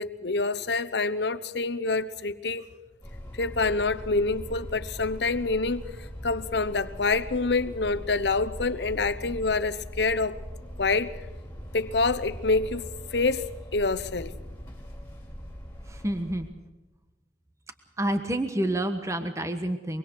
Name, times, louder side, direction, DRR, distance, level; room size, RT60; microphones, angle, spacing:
voice 1, 0.0-2.7 3.4-5.8 6.2-10.4 10.8-11.1 11.7-14.3, left 3 dB, 65° left, 1.0 m, -27 dB
sound 1, 3.0-16.5, equal, 15° left, 4.8 m, -41 dB
voice 2, 15.9-16.5 18.0-20.0, right 1 dB, 15° right, 1.3 m, -28 dB
24.5 x 23.0 x 4.7 m
head